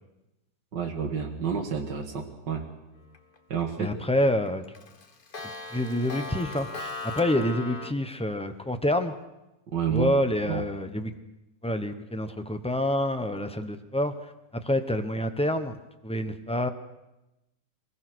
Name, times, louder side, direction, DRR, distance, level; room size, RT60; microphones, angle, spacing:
voice 1, 0.7-2.7 3.5-3.9 9.7-10.1 10.5-10.6, right 7 dB, 65° right, 0 dB, 2.6 m, -29 dB
Clock, 3.1-3.6 4.0-4.1 4.5-7.9, left 3 dB, 35° left, 1.1 m, -38 dB
voice 2, 3.8-4.6 5.7-9.1 9.9-11.1 11.6-15.8 16.0-16.7, left 1 dB, 5° left, 8 dB, 0.6 m, -27 dB
23.5 x 20.5 x 6.3 m, 0.98 s
omnidirectional pair, 2.1 m